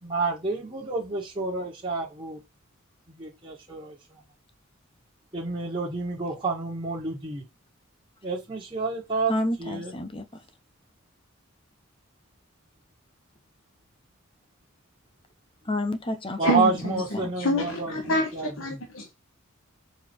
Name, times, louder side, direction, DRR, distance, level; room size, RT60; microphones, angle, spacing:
voice 1, 0.0-2.4 3.1-4.2 5.3-7.4 8.2-9.3 9.6-9.9 16.4-18.8, right 3 dB, 25° right, 1.8 m, -29 dB
voice 2, 9.3-10.4 15.6-16.8 17.1-17.3, left 1 dB, 25° left, 0.9 m, -30 dB
voice 3, 16.4-16.7 17.4-18.3 18.6-19.1, equal, 75° left, 1.4 m, -26 dB
6.5 x 4.7 x 4.6 m
head